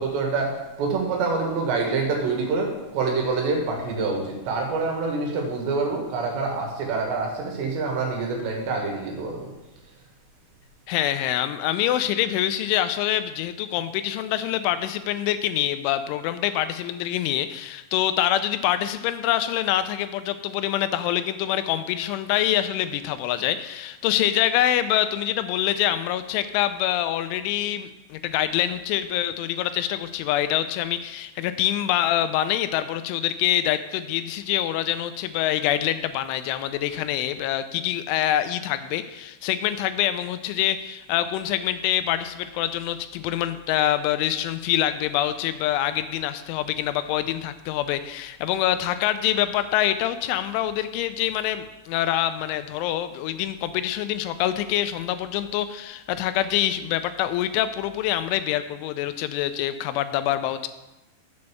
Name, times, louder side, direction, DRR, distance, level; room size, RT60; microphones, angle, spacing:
voice 1, 0.0-9.5, right 4 dB, 70° right, 0 dB, 3.7 m, -26 dB
voice 2, 10.9-60.7, left 12 dB, 85° left, 11 dB, 3.0 m, -25 dB
8.0 x 5.2 x 6.8 m, 0.99 s
omnidirectional pair, 5.4 m